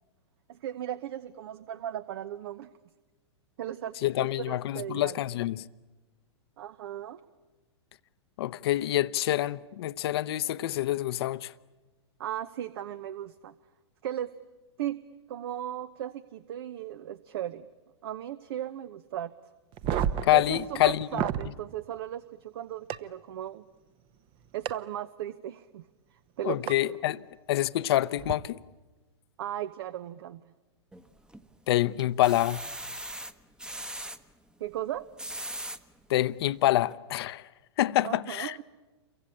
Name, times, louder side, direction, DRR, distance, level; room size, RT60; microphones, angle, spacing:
voice 1, 0.5-2.7 3.6-5.2 6.6-7.2 12.2-13.5 14.0-14.3 14.8-15.0 15.3-17.7 18.0-19.3 20.3-23.6 24.5-25.8 26.4-26.6 26.8-27.0 29.4-30.4 34.6-35.1 38.0-38.6, right 11 dB, 60° right, 1.0 m, -36 dB
voice 2, 4.0-5.6 8.4-11.5 20.2-21.3 26.4-27.2 27.5-28.6 31.7-32.6 36.1-37.5 37.8-38.6, left 14 dB, 60° left, 0.9 m, -26 dB
sound 1, 19.7-21.5 22.9-23.0 24.7-24.8 26.7-26.8 28.2-28.3, right 9 dB, 35° right, 1.0 m, -31 dB
sound 2, 30.9-31.5 32.0-34.2 35.0-35.8 36.4-36.5 36.8-36.9, right 1 dB, 5° right, 1.1 m, -39 dB
29.0 x 23.5 x 8.6 m
hypercardioid pair, 120°, 15 cm